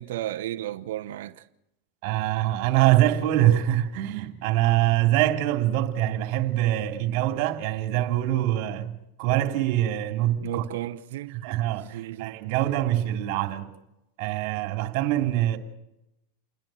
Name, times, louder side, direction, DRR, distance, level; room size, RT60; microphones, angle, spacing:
voice 1, 0.0-1.5 10.4-11.4 11.8-12.4, right 14 dB, 70° right, 1.0 m, -33 dB
voice 2, 2.0-10.6 11.3-13.7 14.2-15.6, right 13 dB, 55° right, 3.2 m, -24 dB
29.0 x 10.5 x 9.1 m
hypercardioid pair, 115°, 0 cm